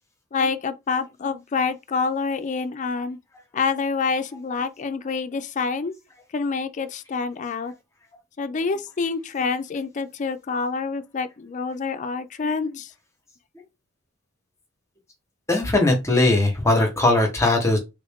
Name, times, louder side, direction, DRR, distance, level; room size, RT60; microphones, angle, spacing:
voice 1, 0.3-3.2 3.5-5.9 6.3-7.7 8.4-12.9, left 4 dB, 35° left, 0.4 m, -27 dB
voice 2, 15.5-17.8, left 2 dB, 15° left, 0.9 m, -19 dB
3.3 x 2.5 x 3.5 m
head